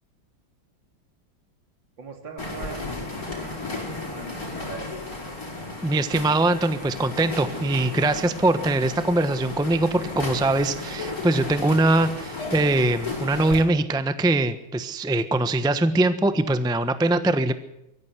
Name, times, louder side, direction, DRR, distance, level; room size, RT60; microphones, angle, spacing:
voice 1, 2.0-3.0 3.4-5.0, right 5 dB, 65° right, 4 dB, 3.8 m, -41 dB
sound 1, 2.4-13.6, left 2 dB, 45° left, 6.5 m, -34 dB
voice 2, 5.8-17.5, right 2 dB, 5° right, 11 dB, 0.9 m, -22 dB
23.0 x 15.0 x 8.1 m, 0.85 s
omnidirectional pair, 2.2 m